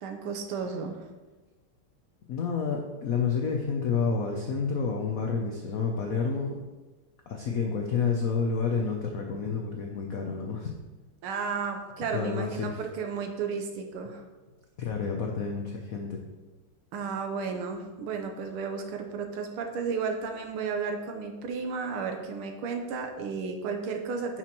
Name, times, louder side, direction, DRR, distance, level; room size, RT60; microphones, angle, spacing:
voice 1, 0.0-1.0 11.2-14.2 16.9-24.4, right 5 dB, 80° right, 4 dB, 1.7 m, -33 dB
voice 2, 2.3-6.6 7.3-10.7 12.1-12.8 14.8-16.2, left 5 dB, 85° left, 2 dB, 0.7 m, -29 dB
9.9 x 6.0 x 3.0 m, 1.2 s
omnidirectional pair, 2.4 m